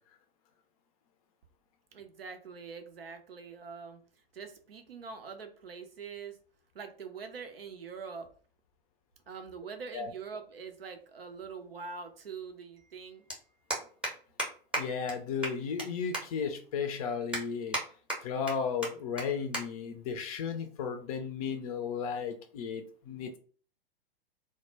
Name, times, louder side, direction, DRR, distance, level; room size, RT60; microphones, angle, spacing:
voice 1, 1.9-4.0 4.3-6.4 6.7-8.3 9.3-13.5, right 5 dB, 75° right, 6 dB, 0.6 m, -44 dB
sound 1, 11.0-11.1 12.5-12.6 12.8-13.0 13.3-13.4 13.7-14.1 14.4-14.5 14.7-14.8 15.1-15.2 15.4-15.9 16.1-16.2 16.7-16.8 17.3-17.8 18.1-18.5 18.8-18.9 19.2-19.3 19.5-19.6 20.0-20.2 21.0-21.2, right 1 dB, 5° right, 0.7 m, -33 dB
voice 2, 14.8-17.8 18.2-23.4, left 6 dB, 40° left, 7 dB, 0.4 m, -34 dB
2.1 x 2.1 x 3.1 m, 0.42 s
figure-of-eight pair, 100°, 30 cm